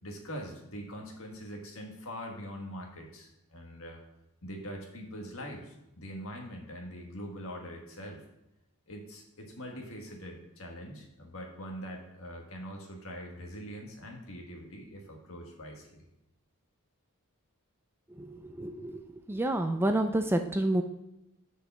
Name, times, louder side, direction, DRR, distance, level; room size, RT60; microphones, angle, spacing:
voice 1, 0.0-4.0 4.4-8.2 8.9-16.0, equal, 65° left, 1 dB, 1.7 m, -43 dB
voice 2, 18.2-19.0 19.3-20.8, right 1 dB, 10° right, 6 dB, 0.4 m, -29 dB
6.5 x 5.1 x 6.9 m, 0.89 s
head